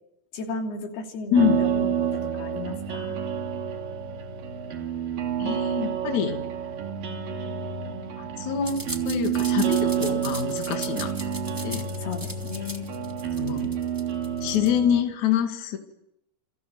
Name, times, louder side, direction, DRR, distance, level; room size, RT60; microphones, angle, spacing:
voice 1, 0.3-3.2 12.0-12.9, left 4 dB, 75° left, 3 dB, 4.9 m, -35 dB
voice 2, 1.3-1.6 5.4-6.4 8.2-11.1 11.6-11.8 13.4-13.7 14.4-15.8, left 9 dB, 50° left, 4 dB, 3.3 m, -26 dB
sound 1, 1.4-15.0, right 8 dB, 60° right, 4.1 m, -29 dB
sound 2, 8.6-14.8, right 1 dB, 25° right, 0.4 m, -38 dB
28.5 x 25.0 x 8.0 m, 0.81 s
omnidirectional pair, 4.6 m